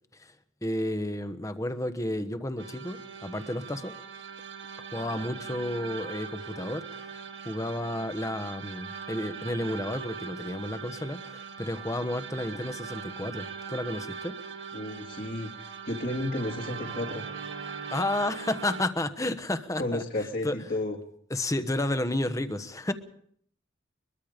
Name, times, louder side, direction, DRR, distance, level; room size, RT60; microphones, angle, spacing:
voice 1, 0.6-4.0 4.9-14.4 17.9-20.0 20.4-20.6 21.3-22.9, left 1 dB, 15° left, 10 dB, 1.1 m, -32 dB
sound 1, 2.6-18.9, right 6 dB, 60° right, 1.8 m, -40 dB
voice 2, 14.7-17.2 19.8-21.0, left 1 dB, 50° left, -1 dB, 2.1 m, -32 dB
22.5 x 22.5 x 5.1 m, 0.65 s
head